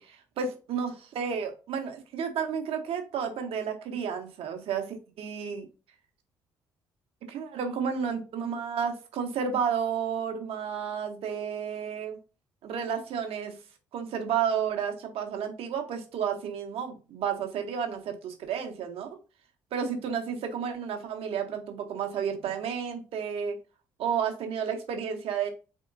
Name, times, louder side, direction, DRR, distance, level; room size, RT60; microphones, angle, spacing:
voice 1, 0.1-5.7 7.3-12.2 12.6-13.5 13.9-19.2 19.7-23.6 24.0-25.5, right 7 dB, 55° right, 5 dB, 0.8 m, -31 dB
3.6 x 3.5 x 2.5 m, 0.33 s
figure-of-eight pair, 45°, 12 cm